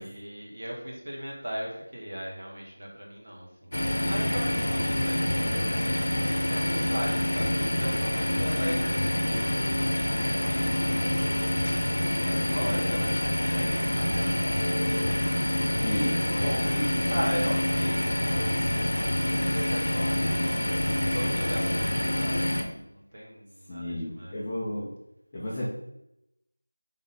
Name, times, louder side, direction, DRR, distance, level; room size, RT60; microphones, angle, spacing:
voice 1, 0.0-5.4 6.2-10.5 10.8-14.6 15.8-20.3 20.5-24.4, equal, 45° right, -3 dB, 1.1 m, -38 dB
sound 1, 3.7-22.6, left 1 dB, 60° left, 0.8 m, -27 dB
voice 2, 15.8-17.1 23.7-24.9 25.3-25.7, left 1 dB, 15° left, -7 dB, 0.5 m, -33 dB
3.6 x 3.5 x 3.8 m, 0.84 s
figure-of-eight pair, 175°, 0 cm